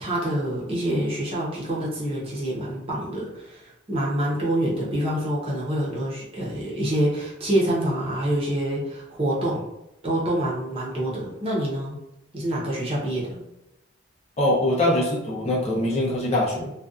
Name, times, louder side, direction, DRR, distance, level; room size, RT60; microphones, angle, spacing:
voice 1, 0.0-9.7 10.0-12.0 12.3-13.4, right 1 dB, 30° right, -5 dB, 0.6 m, -26 dB
voice 2, 14.4-16.7, left 1 dB, 35° left, -4 dB, 0.5 m, -23 dB
2.5 x 2.2 x 2.3 m, 0.87 s
head